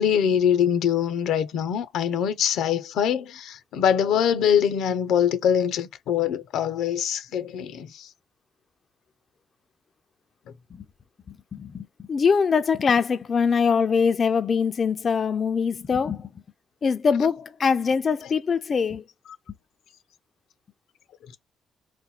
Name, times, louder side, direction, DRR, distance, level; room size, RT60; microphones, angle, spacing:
voice 1, 0.0-7.9, left 8 dB, 85° left, 0.6 m, -23 dB
voice 2, 11.3-16.3 16.8-19.0, left 6 dB, 45° left, 0.4 m, -23 dB
4.2 x 2.2 x 4.0 m
cardioid pair, 90°, 0 cm